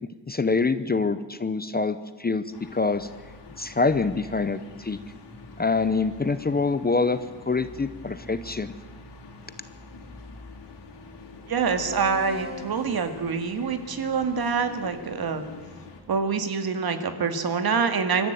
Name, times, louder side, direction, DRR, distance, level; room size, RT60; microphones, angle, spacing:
voice 1, 0.3-2.4 2.7-3.1 3.6-5.0 5.6-7.2 7.5-8.7, left 4 dB, 20° left, 12 dB, 0.7 m, -25 dB
sound 1, 2.5-16.0, left 3 dB, 70° left, 4.3 m, -45 dB
voice 2, 11.5-15.5 16.1-18.3, right 5 dB, 55° right, 8 dB, 2.2 m, -26 dB
sound 2, 11.8-17.1, left 3 dB, 25° right, 2.2 m, -43 dB
26.0 x 14.0 x 9.2 m, 1.4 s
wide cardioid pair, 175°, 42 cm